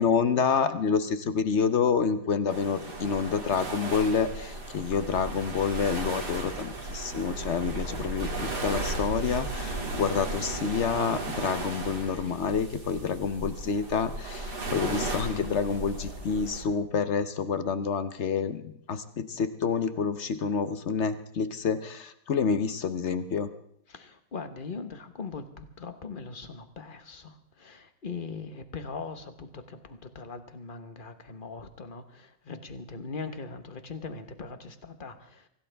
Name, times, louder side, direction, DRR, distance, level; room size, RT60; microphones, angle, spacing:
voice 1, 0.0-23.5, left 6 dB, 55° left, 11 dB, 0.7 m, -28 dB
sound 1, 2.5-16.6, right 2 dB, 50° right, 3.2 m, -35 dB
voice 2, 23.9-35.5, left 4 dB, 30° left, 9 dB, 1.1 m, -40 dB
25.0 x 16.0 x 3.5 m, 0.72 s
omnidirectional pair, 2.2 m